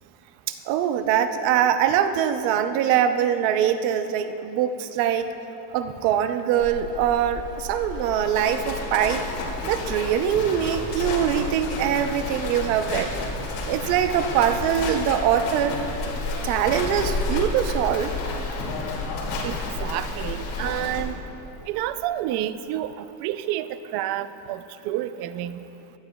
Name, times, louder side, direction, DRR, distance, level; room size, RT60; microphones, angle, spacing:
voice 1, 0.5-5.3 5.7-9.2 9.6-13.1 13.7-15.8 16.4-18.1, right 9 dB, 75° right, 8 dB, 0.8 m, -23 dB
Livestock farm animals working animals, 6.6-21.0, left 2 dB, 85° left, 2.4 m, -31 dB
voice 2, 19.4-21.2 21.7-22.9 23.2-25.6, right 12 dB, 50° right, 13 dB, 0.5 m, -29 dB
16.5 x 12.0 x 2.3 m, 3.0 s
cardioid pair, 150°, 50 cm